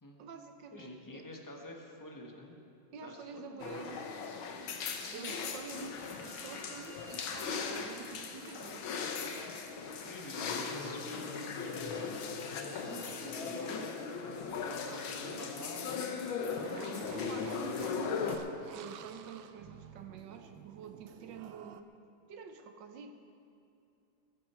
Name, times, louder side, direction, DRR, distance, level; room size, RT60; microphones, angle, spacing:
voice 1, 0.2-1.3 2.9-4.1 5.0-8.9 9.3-9.4 13.1-13.6 14.8-15.1 17.1-21.9 22.3-23.1, right 6 dB, 65° right, 7 dB, 1.5 m, -48 dB
voice 2, 0.7-2.6 3.0-3.6 5.0-5.3 10.0-12.4 12.9-13.9 14.9-16.1 16.4-17.2, left 1 dB, 10° left, 1 dB, 1.2 m, -48 dB
sound 1, 3.6-18.4, left 5 dB, 85° left, 1.8 m, -38 dB
Bowed string instrument, 5.9-13.3, right 2 dB, 25° right, 4.0 m, -60 dB
sound 2, 16.6-21.8, right 9 dB, 90° right, 1.4 m, -52 dB
21.5 x 10.5 x 4.4 m, 2.6 s
omnidirectional pair, 2.1 m